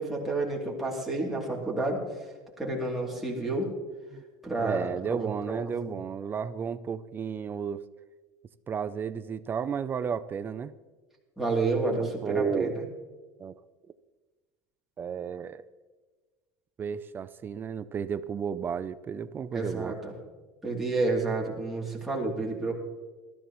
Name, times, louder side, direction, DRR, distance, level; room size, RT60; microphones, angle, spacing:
voice 1, 0.0-2.0 2.6-3.7 4.4-4.8 5.1-5.6 5.9-6.0 11.4-12.9 19.5-20.1 20.6-22.7, right 3 dB, ahead, -4 dB, 3.0 m, -30 dB
voice 2, 4.6-7.8 8.7-10.7 11.9-12.8 13.4-13.5 15.0-15.6 16.8-20.0, right 7 dB, 20° right, 14 dB, 0.5 m, -33 dB
19.5 x 13.5 x 3.1 m, 1.3 s
cardioid pair, 160°, 9 cm